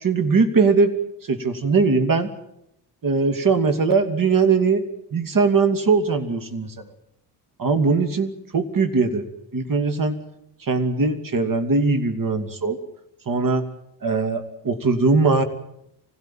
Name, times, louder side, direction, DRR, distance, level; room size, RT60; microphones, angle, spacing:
voice 1, 0.0-0.9 1.3-2.3 3.0-4.8 5.1-6.7 7.6-9.2 9.5-10.2 10.6-12.8 13.3-13.7 14.0-15.4, right 4 dB, 45° right, 9 dB, 2.8 m, -20 dB
25.0 x 16.5 x 9.2 m, 0.82 s
hypercardioid pair, 55°, 47 cm